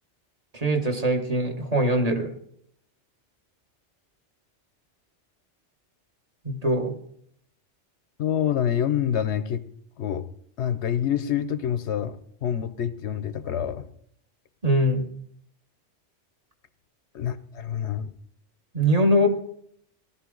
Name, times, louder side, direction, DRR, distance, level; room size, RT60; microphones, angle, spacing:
voice 1, 0.5-2.3 6.4-6.9 14.6-15.0 18.7-19.3, equal, 35° right, 3 dB, 1.4 m, -22 dB
voice 2, 8.2-9.6 10.0-10.3 10.6-13.9 17.1-18.1, left 9 dB, 70° left, 14 dB, 0.9 m, -27 dB
17.5 x 12.0 x 3.8 m, 0.67 s
omnidirectional pair, 1.2 m